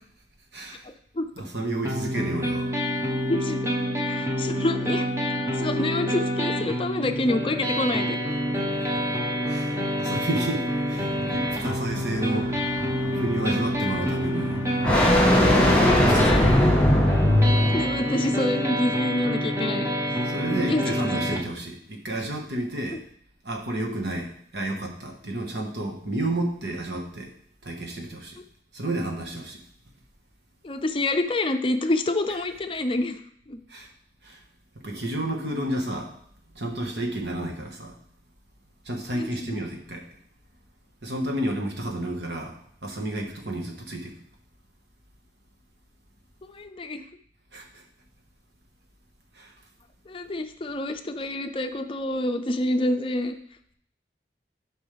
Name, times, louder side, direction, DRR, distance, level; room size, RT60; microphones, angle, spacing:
voice 1, 0.5-0.9 1.4-2.7 8.9-9.1 9.5-12.5 13.1-14.6 15.2-16.7 20.2-23.0 23.4-27.3 27.6-28.4 28.7-29.6 33.7-33.9 34.2-34.4 34.8-36.1 36.5-38.0 38.8-40.0 41.0-44.1 47.5-47.8 49.3-49.5, right 1 dB, 75° right, 1 dB, 1.5 m, -31 dB
sound 1, 1.9-21.4, equal, 15° right, 1.0 m, -27 dB
voice 2, 3.3-3.6 4.1-5.1 5.6-8.3 17.5-20.1 20.5-20.9 22.9-23.0 30.6-33.2 33.5-33.6 39.1-39.5 46.4-47.0 50.1-53.3, left 2 dB, 30° left, 7 dB, 0.5 m, -27 dB
sound 2, 11.0-18.0, left 1 dB, 5° left, 2.1 m, -21 dB
11.5 x 5.3 x 3.4 m, 0.65 s
head